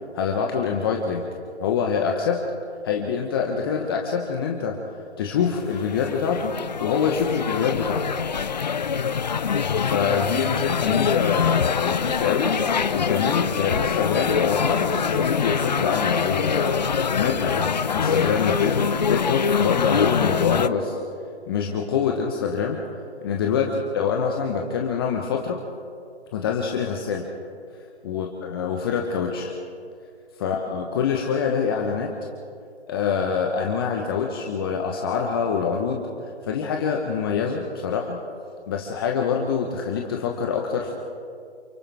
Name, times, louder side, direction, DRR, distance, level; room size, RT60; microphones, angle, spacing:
voice 1, 0.1-1.3 1.6-2.4 2.8-4.8 5.2-6.5 6.8-8.0 9.8-12.5 12.9-16.8 17.2-21.0 21.5-22.8 23.2-25.6 26.3-27.3 28.0-29.5 30.4-32.1 32.9-38.2 38.7-40.9, left 6 dB, 20° left, 1 dB, 1.2 m, -25 dB
sound 1, 5.4-20.7, left 6 dB, 40° left, 0.5 m, -24 dB
28.5 x 25.5 x 3.6 m, 2.3 s
figure-of-eight pair, 150°, 33 cm